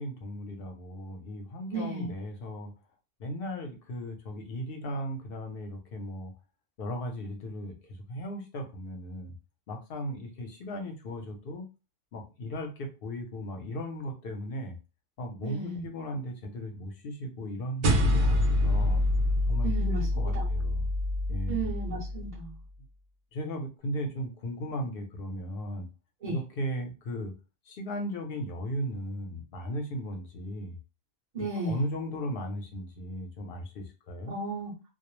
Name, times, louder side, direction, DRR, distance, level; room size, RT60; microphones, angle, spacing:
voice 1, 0.0-2.7 3.2-6.3 6.8-9.3 9.7-11.7 12.1-14.7 15.2-19.0 19.5-20.9 21.3-21.7 23.3-25.9 26.3-27.3 27.7-30.8 31.4-34.4, equal, 65° left, 4 dB, 0.8 m, -36 dB
voice 2, 1.7-2.1 15.4-15.9 19.6-20.0 20.3-20.5 21.5-22.5 26.2-26.4 31.3-31.8 34.3-34.7, right 3 dB, 45° right, -8 dB, 0.8 m, -34 dB
sound 1, 17.8-22.5, left 1 dB, 85° right, 0.9 m, -26 dB
2.3 x 2.0 x 3.0 m, 0.30 s
omnidirectional pair, 1.1 m